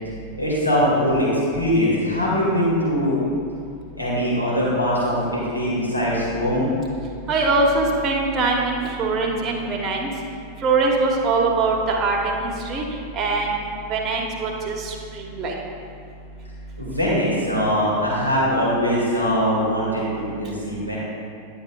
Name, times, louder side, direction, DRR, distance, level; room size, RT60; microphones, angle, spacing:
voice 1, 0.4-1.3 1.5-3.1 4.0-6.7 16.8-21.0, equal, 85° left, -7 dB, 2.0 m, -22 dB
voice 2, 7.3-10.1 10.6-12.8 13.1-13.6 13.9-15.5, right 3 dB, 30° right, -1 dB, 1.1 m, -22 dB
10.5 x 7.9 x 2.3 m, 2.3 s
figure-of-eight pair, 90°, 0 cm